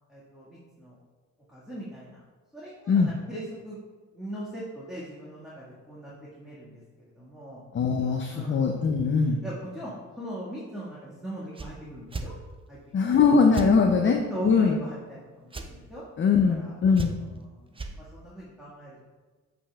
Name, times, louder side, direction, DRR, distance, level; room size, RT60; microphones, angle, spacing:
voice 1, 0.1-1.0 1.5-2.2 2.5-3.8 4.1-6.1 6.4-6.8 7.1-7.6 8.3-8.7 9.4-12.3 12.7-12.8 13.0-13.1 13.4-13.6 14.0-16.0 16.5-19.0, right 1 dB, ahead, -8 dB, 1.7 m, -40 dB
voice 2, 7.7-9.4 12.9-14.7 16.2-17.2, left 5 dB, 40° left, 3 dB, 0.5 m, -21 dB
sound 1, 11.5-11.7 12.1-12.3 13.5-13.7 15.5-15.7 16.9-17.4 17.7-17.9, right 3 dB, 15° right, 0.5 m, -34 dB
8.5 x 5.3 x 2.3 m, 1.3 s
cardioid pair, 85°, 31 cm